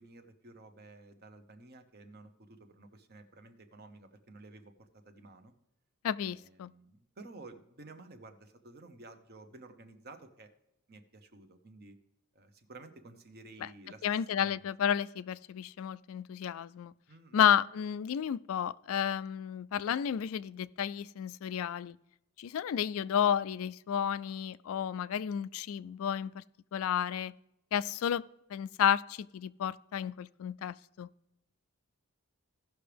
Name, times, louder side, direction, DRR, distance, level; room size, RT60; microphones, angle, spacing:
voice 1, 0.0-5.5 6.2-10.5 10.9-12.0 12.3-14.7 17.1-17.4, right 2 dB, 45° right, 0.9 m, -53 dB
voice 2, 6.0-6.7 13.6-13.7 14.0-16.9 17.3-22.0 22.4-26.4 26.7-27.3 27.7-28.2 28.5-31.1, left 9 dB, 70° left, 0.3 m, -31 dB
16.0 x 5.9 x 3.4 m
head